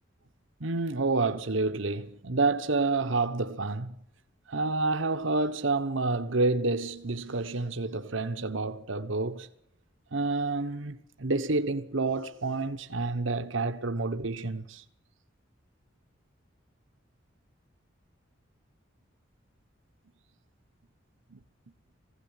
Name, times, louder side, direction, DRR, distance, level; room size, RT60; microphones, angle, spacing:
voice 1, 0.6-3.9 4.5-9.5 10.1-14.8 21.3-21.4, right 3 dB, 75° right, 1.1 m, -29 dB
21.5 x 16.5 x 9.1 m
head